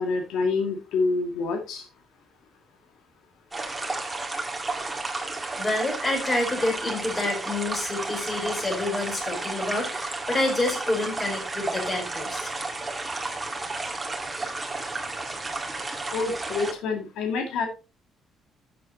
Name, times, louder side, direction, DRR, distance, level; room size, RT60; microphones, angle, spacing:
voice 1, 0.0-1.9 16.1-17.7, left 4 dB, 90° left, 4 dB, 2.2 m, -27 dB
sound 1, 3.5-16.7, right 2 dB, 10° right, 1.8 m, -32 dB
voice 2, 5.6-12.5, left 2 dB, 20° left, 1 dB, 4.1 m, -28 dB
12.0 x 7.6 x 2.9 m, 0.29 s
cardioid pair, 150°, 0 cm